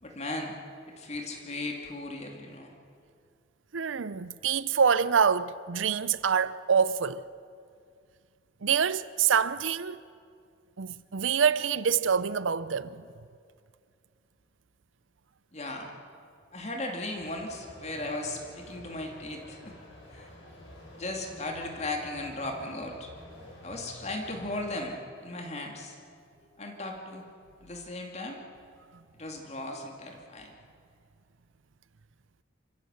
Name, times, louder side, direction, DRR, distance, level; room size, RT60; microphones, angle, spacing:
voice 1, 0.0-0.5 0.9-2.7 15.5-16.0 16.5-19.8 20.1-20.3 21.0-23.1 23.6-26.0 26.6-27.3 27.6-28.4 29.2-30.6, left 2 dB, 35° left, 2.5 m, -37 dB
voice 2, 3.7-7.2 8.6-10.0 10.8-13.0, right 7 dB, 85° right, 0.6 m, -26 dB
sound 1, 17.2-24.8, left 1 dB, 90° left, 6.1 m, -49 dB
27.5 x 15.5 x 8.0 m
head